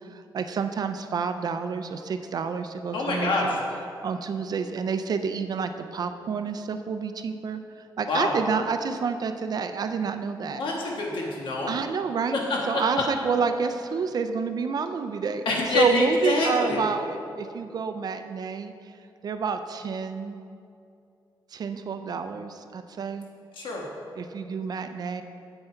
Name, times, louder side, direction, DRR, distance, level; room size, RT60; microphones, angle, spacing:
voice 1, 0.1-3.6 4.0-7.6 8.0-10.6 11.7-18.9 19.2-20.4 21.5-23.3 24.1-25.2, right 5 dB, 50° right, 8 dB, 0.4 m, -29 dB
voice 2, 2.9-3.6 8.1-8.3 10.5-11.7 12.5-12.8 15.4-16.8 23.6-23.8, left 2 dB, 85° left, -2 dB, 1.4 m, -25 dB
9.2 x 8.0 x 4.5 m, 2.5 s
wide cardioid pair, 160°, 8 cm